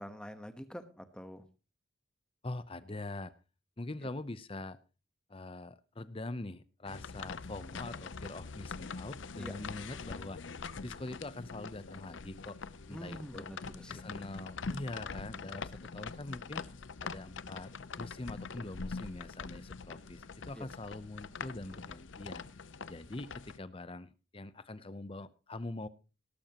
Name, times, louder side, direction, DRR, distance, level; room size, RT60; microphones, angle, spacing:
voice 1, 0.0-1.5 9.4-9.9 12.9-14.0 20.5-20.7, equal, 5° left, 9 dB, 1.1 m, -46 dB
voice 2, 2.4-3.3 3.8-4.8 5.3-10.4 10.8-12.6 12.9-13.5 13.9-16.7 17.0-22.4 22.9-25.9, left 2 dB, 25° left, 15 dB, 0.7 m, -43 dB
sound 1, 6.9-23.6, left 4 dB, 70° left, 0.7 m, -44 dB
18.5 x 12.0 x 3.0 m, 0.32 s
head